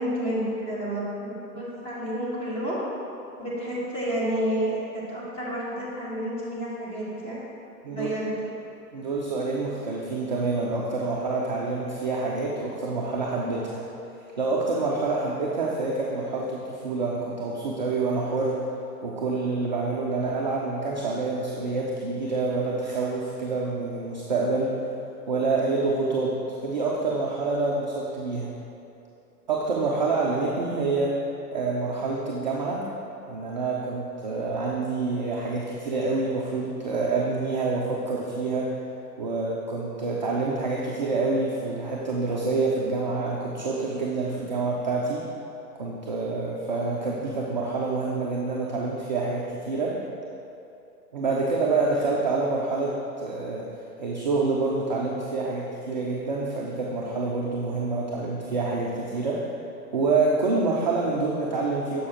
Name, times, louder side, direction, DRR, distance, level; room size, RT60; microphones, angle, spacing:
voice 1, 0.0-2.8 3.4-7.4 7.9-8.3, equal, 10° left, -7 dB, 1.3 m, -30 dB
voice 2, 8.9-13.8 14.4-18.6 19.0-24.8 25.3-28.5 29.5-31.2 31.5-32.9 33.3-38.7 39.2-45.2 45.8-50.0 51.1-53.6 54.0-59.5 59.9-62.1, right 3 dB, 30° right, -3 dB, 0.4 m, -27 dB
7.0 x 6.3 x 2.9 m, 2.7 s
hypercardioid pair, 125°, 49 cm